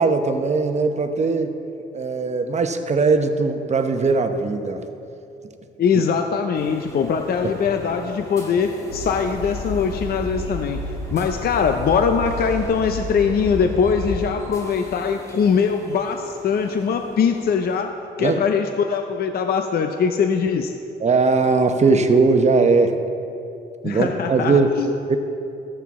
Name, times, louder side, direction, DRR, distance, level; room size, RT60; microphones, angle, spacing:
voice 1, 0.0-1.5 1.9-4.8 7.4-7.5 18.2-18.4 21.0-23.0 23.8-24.7 25.1-25.2, right 4 dB, 35° right, 7 dB, 0.8 m, -19 dB
voice 2, 5.8-10.8 11.1-17.9 18.2-20.7 23.8-24.9, left 6 dB, 50° left, 6 dB, 0.6 m, -22 dB
sound 1, 6.5-17.8, equal, 15° left, 1.6 m, -42 dB
Train, 8.9-14.2, left 2 dB, 85° left, 1.5 m, -31 dB
13.5 x 8.0 x 3.7 m, 2.7 s
cardioid pair, 90°, 20 cm